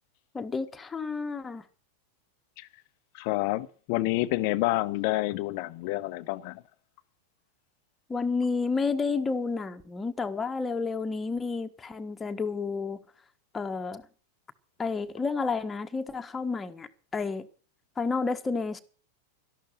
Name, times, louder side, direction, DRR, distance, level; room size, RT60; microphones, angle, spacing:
voice 1, 0.3-1.6 8.1-13.0 13.5-14.0 14.8-17.5 18.0-18.8, left 4 dB, 15° left, 1.4 m, -30 dB
voice 2, 3.1-6.6, left 18 dB, 45° left, 0.8 m, -28 dB
13.0 x 12.0 x 7.4 m
figure-of-eight pair, 90°, 0 cm